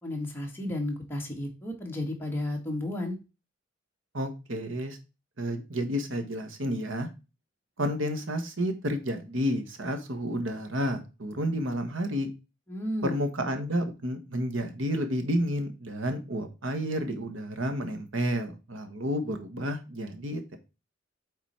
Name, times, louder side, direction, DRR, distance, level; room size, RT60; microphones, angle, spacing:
voice 1, 0.0-3.2 12.7-13.2, left 1 dB, 10° left, 0 dB, 1.8 m, -33 dB
voice 2, 4.1-5.0 5.4-7.1 7.8-12.3 13.0-20.6, equal, 90° right, 7 dB, 1.4 m, -30 dB
7.9 x 4.0 x 4.3 m, 0.29 s
head